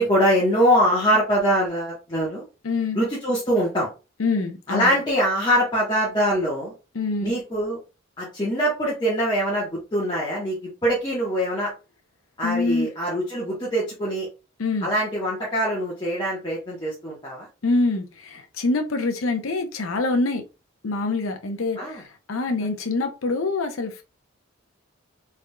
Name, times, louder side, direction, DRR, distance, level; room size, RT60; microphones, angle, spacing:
voice 1, 0.0-2.4 2.9-3.9 4.7-6.7 7.2-7.8 8.2-11.7 12.4-14.3 14.8-17.5 21.8-22.0, equal, 20° left, 1.1 m, -23 dB
voice 2, 2.6-3.0 4.2-4.9 6.9-7.3 12.4-12.9 14.6-14.9 17.6-20.4 20.8-22.0 22.3-24.0, left 3 dB, 85° left, 0.7 m, -25 dB
3.6 x 3.3 x 2.2 m
head